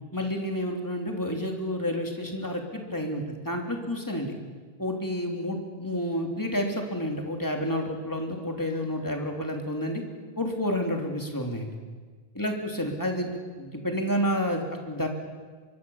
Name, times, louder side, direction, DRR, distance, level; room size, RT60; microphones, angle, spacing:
voice 1, 0.1-4.3 4.8-10.0 10.4-11.7 12.3-15.1, equal, 20° left, 2 dB, 3.3 m, -30 dB
24.0 x 23.5 x 7.2 m, 1.5 s
omnidirectional pair, 1.0 m